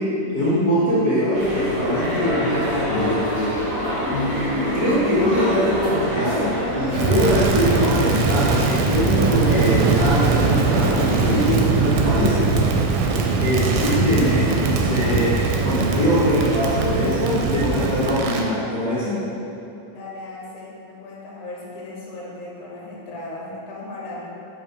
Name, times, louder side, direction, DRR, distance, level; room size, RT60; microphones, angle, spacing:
voice 1, 0.0-3.5 4.1-12.5 13.4-15.3 15.6-19.2, left 1 dB, 90° left, -13 dB, 0.7 m, -22 dB
sound 1, 1.3-11.5, equal, 65° right, 0.8 m, -27 dB
voice 2, 4.4-6.0 16.0-16.8 19.9-24.3, left 2 dB, 75° left, -4 dB, 2.2 m, -38 dB
Crackle, 6.9-18.5, right 4 dB, 85° right, 1.7 m, -21 dB
7.2 x 2.6 x 5.2 m, 2.9 s
omnidirectional pair, 3.9 m